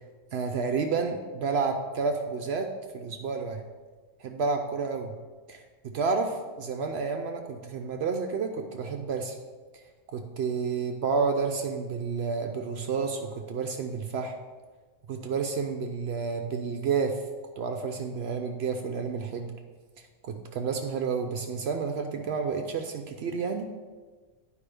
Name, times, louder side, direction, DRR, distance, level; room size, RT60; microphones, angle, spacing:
voice 1, 0.3-2.7 2.9-3.6 4.2-5.1 5.5-9.4 10.1-14.3 15.1-17.2 17.6-19.5 20.2-23.8, right 5 dB, 65° right, 5 dB, 0.8 m, -30 dB
10.0 x 4.9 x 3.4 m, 1.4 s
omnidirectional pair, 1.3 m